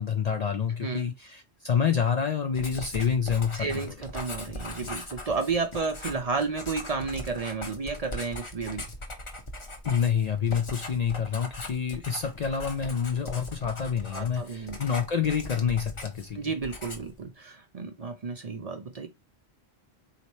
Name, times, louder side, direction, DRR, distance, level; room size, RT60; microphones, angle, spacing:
voice 1, 0.0-3.9 9.8-16.4, left 7 dB, 55° left, 0.5 m, -28 dB
Writing, 2.5-16.3 16.6-17.2, left 1 dB, 30° left, 0.8 m, -40 dB
voice 2, 3.5-8.8 14.1-14.8 16.4-19.1, right 4 dB, 45° right, 0.5 m, -32 dB
4.1 x 2.9 x 3.0 m
omnidirectional pair, 1.1 m